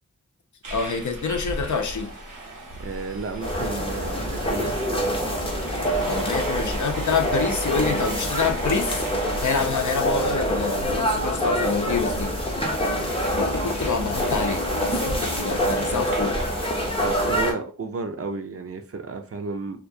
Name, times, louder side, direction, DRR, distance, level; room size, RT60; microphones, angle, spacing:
sound 1, 0.6-17.5, right 1 dB, 85° right, 0.7 m, -36 dB
voice 1, 0.7-2.1 6.0-9.0 9.4-12.3 13.4-16.4, left 5 dB, 70° left, 4 dB, 0.5 m, -27 dB
voice 2, 2.8-5.0 13.6-13.7 15.9-16.1 17.0-19.9, right 4 dB, 50° right, 5 dB, 0.4 m, -33 dB
sound 2, 3.4-17.5, equal, 15° left, 0.6 m, -26 dB
2.3 x 2.1 x 2.6 m, 0.38 s
wide cardioid pair, 55°, 31 cm